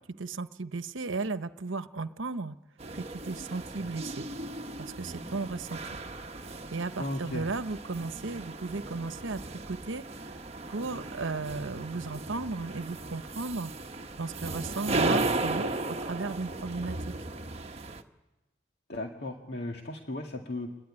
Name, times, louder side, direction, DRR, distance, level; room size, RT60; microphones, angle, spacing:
voice 1, 0.2-2.6 2.9-4.3 4.8-5.8 6.7-10.4 10.7-13.7 14.2-17.0, right 3 dB, 85° right, 11 dB, 1.0 m, -35 dB
sound 1, 2.8-18.0, right 2 dB, 35° right, 1.3 m, -36 dB
voice 2, 7.0-7.4 18.9-20.7, left 1 dB, 55° left, 2 dB, 2.0 m, -36 dB
27.5 x 21.0 x 9.8 m, 1.1 s
head